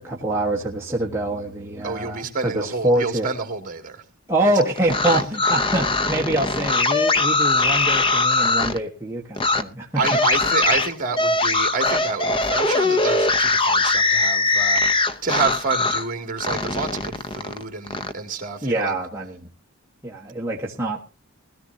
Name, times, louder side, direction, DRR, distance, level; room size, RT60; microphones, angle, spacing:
voice 1, 0.0-3.3 4.3-9.9 18.6-19.5 20.0-21.0, right 1 dB, 10° right, 1.3 m, -25 dB
voice 2, 1.8-4.0 5.1-5.3 10.0-19.0, right 4 dB, 40° right, 2.4 m, -28 dB
sound 1, 4.8-8.8 9.4-9.6 10.0-16.1 16.4-18.1, left 3 dB, 25° left, 0.7 m, -21 dB
20.5 x 13.5 x 2.7 m
head